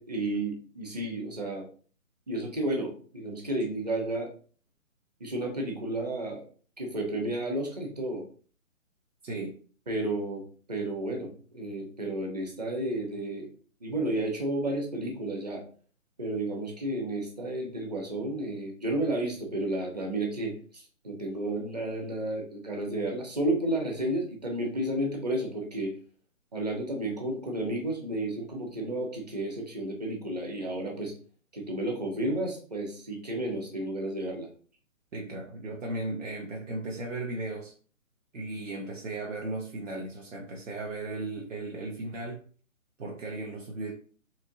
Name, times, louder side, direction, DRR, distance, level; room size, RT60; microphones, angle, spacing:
voice 1, 0.0-1.7 2.3-4.3 5.2-6.4 6.8-8.2 9.9-10.4 10.7-13.5 13.8-15.6 16.2-26.0 26.5-31.1 31.5-34.5, right 1 dB, 30° right, 0 dB, 0.9 m, -32 dB
voice 2, 9.2-9.5 35.1-37.7 38.3-42.4 43.0-43.9, right 2 dB, 65° right, -1 dB, 1.0 m, -36 dB
4.2 x 2.9 x 2.7 m, 0.42 s
hypercardioid pair, 170°, 41 cm